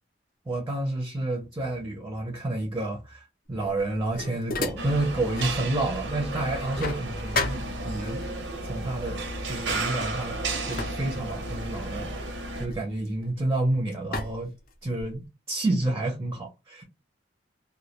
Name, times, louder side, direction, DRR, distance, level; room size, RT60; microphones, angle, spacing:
voice 1, 0.5-8.2 8.6-10.4 10.7-14.5 14.8-15.2 15.5-16.8, right 2 dB, 15° right, 0.5 m, -30 dB
sound 1, 3.6-5.6 6.0-8.3 9.2-9.4 9.7-13.6 14.1-15.3, left 3 dB, 50° left, 0.4 m, -36 dB
sound 2, 4.8-12.7, right 2 dB, 85° right, 0.6 m, -33 dB
2.2 x 2.1 x 2.8 m
head